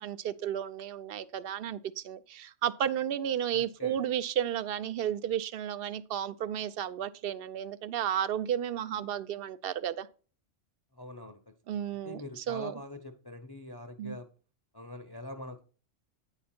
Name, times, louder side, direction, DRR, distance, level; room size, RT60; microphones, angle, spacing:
voice 1, 0.0-10.1 11.7-12.8 14.0-14.1, right 10 dB, 65° right, 0.7 m, -33 dB
voice 2, 3.5-4.0 10.9-14.3 14.7-15.6, left 1 dB, 25° left, 0.6 m, -44 dB
9.3 x 5.0 x 4.3 m
omnidirectional pair, 1.2 m